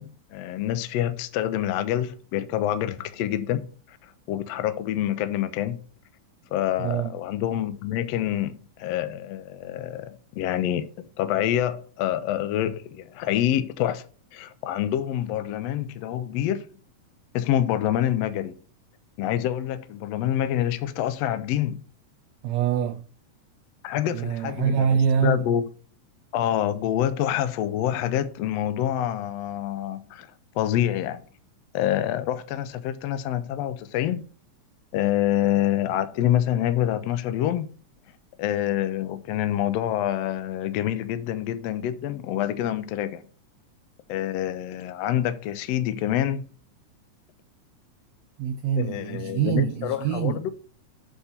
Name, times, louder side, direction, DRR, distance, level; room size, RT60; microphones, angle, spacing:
voice 1, 0.0-4.0 4.3-5.8 6.5-14.1 14.3-16.7 17.3-18.5 19.2-21.8 23.8-24.9 25.2-25.6 26.3-30.3 30.6-31.2 31.7-34.3 34.9-37.7 38.4-43.3 44.1-46.4 48.8-50.5, left 11 dB, 80° left, 1.5 m, -26 dB
voice 2, 6.8-7.1 22.4-23.1 24.1-25.4 48.4-50.4, right 8 dB, 85° right, 1.5 m, -25 dB
8.2 x 3.6 x 5.7 m
omnidirectional pair, 3.6 m